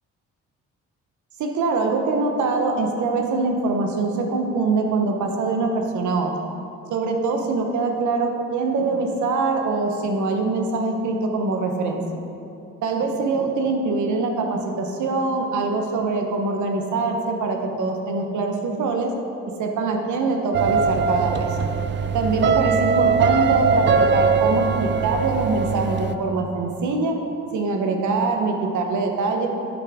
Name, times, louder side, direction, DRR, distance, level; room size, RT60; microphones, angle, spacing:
voice 1, 1.4-6.3 6.9-12.0 12.8-19.1 19.6-21.5 22.1-27.2 27.5-29.5, right 3 dB, 75° right, 3 dB, 1.0 m, -23 dB
sound 1, 20.5-26.1, right 5 dB, 40° right, 0.4 m, -21 dB
10.5 x 6.0 x 3.6 m, 2.8 s
cardioid pair, 90°, 30 cm